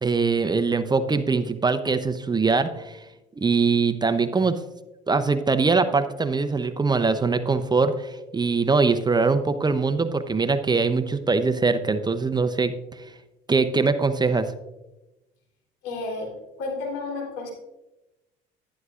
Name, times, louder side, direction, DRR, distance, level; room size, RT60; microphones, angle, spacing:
voice 1, 0.0-3.0 3.4-4.6 5.1-12.7 13.5-14.5, right 4 dB, 20° right, 10 dB, 0.6 m, -22 dB
voice 2, 15.8-16.3 16.6-17.5, left 3 dB, 80° left, -2 dB, 3.5 m, -31 dB
11.0 x 10.5 x 2.5 m, 0.99 s
supercardioid pair, 75°, 21 cm